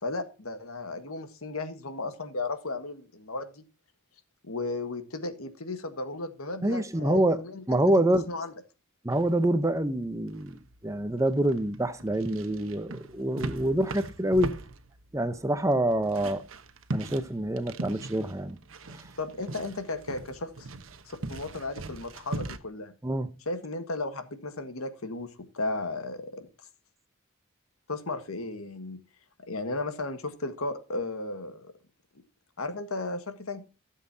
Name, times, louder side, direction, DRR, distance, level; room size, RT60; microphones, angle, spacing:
voice 1, 0.0-3.6 4.4-7.9 8.3-8.5 19.2-20.7 21.1-22.9 23.4-26.5 27.9-29.0 29.4-31.7 32.6-33.6, left 2 dB, 90° left, 1.6 m, -35 dB
voice 2, 6.6-7.4 7.7-8.3 9.0-14.5 15.1-16.4 16.9-18.6 18.9-19.0 23.0-23.3, right 1 dB, 15° right, 0.7 m, -26 dB
sound 1, 9.1-22.6, right 2 dB, 70° right, 1.0 m, -40 dB
16.0 x 7.5 x 2.7 m
head